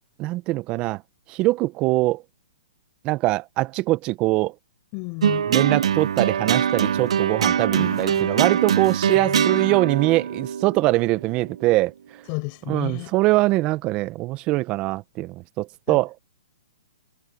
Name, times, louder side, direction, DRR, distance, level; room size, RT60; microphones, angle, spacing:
voice 1, 0.2-1.0 1.3-2.2 3.0-4.5 5.5-11.9 12.7-16.1, right 19 dB, 30° right, 1.3 m, -23 dB
voice 2, 4.9-5.5 7.7-8.5 9.2-9.8 12.3-13.1 15.9-16.0, left 38 dB, 35° left, 6.7 m, -33 dB
sound 1, 5.2-11.7, right 8 dB, 70° right, 1.5 m, -23 dB
hypercardioid pair, 135°, 3 cm